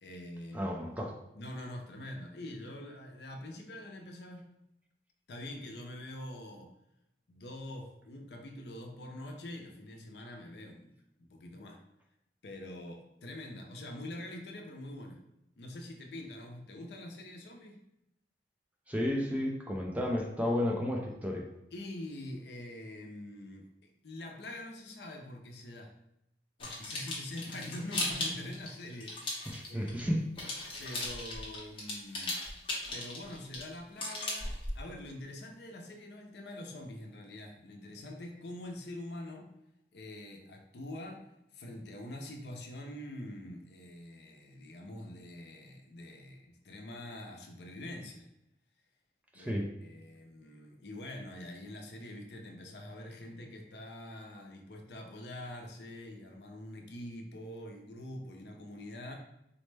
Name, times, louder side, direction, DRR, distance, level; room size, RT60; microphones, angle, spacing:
voice 1, 0.0-4.6 5.3-6.7 7.3-10.9 11.2-11.8 12.4-15.2 15.6-17.8 21.7-25.9 26.6-29.2 29.7-30.2 30.8-32.4 32.9-39.5 39.9-41.3 41.5-48.3 49.3-59.2, left 1 dB, 70° left, 3 dB, 0.5 m, -45 dB
voice 2, 0.5-1.1 18.9-21.5 29.5-30.3 49.3-49.7, left 1 dB, 10° right, 1 dB, 0.3 m, -32 dB
sound 1, 26.6-30.0 30.4-34.9, left 2 dB, 30° left, 0.8 m, -37 dB
4.1 x 2.1 x 3.2 m, 0.82 s
head